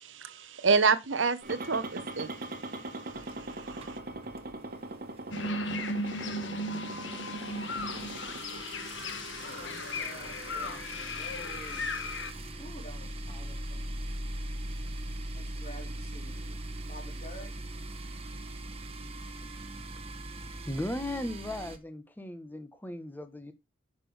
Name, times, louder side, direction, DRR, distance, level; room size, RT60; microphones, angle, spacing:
voice 1, 0.0-2.3 3.7-3.9, right 5 dB, 85° right, 1.0 m, -27 dB
sound 1, 1.4-8.4, right 2 dB, 50° right, 1.6 m, -41 dB
sound 2, 3.1-4.9 5.2-5.4 5.7-5.8 6.0-21.8, right 1 dB, 30° right, 1.3 m, -41 dB
sound 3, 5.3-12.3, left 2 dB, 75° left, 1.6 m, -36 dB
voice 2, 9.5-11.9 12.6-13.8 15.3-16.6 16.8-17.5, equal, 35° left, 3.0 m, -49 dB
voice 3, 20.7-23.5, left 1 dB, 10° left, 1.1 m, -37 dB
10.0 x 6.1 x 3.4 m
head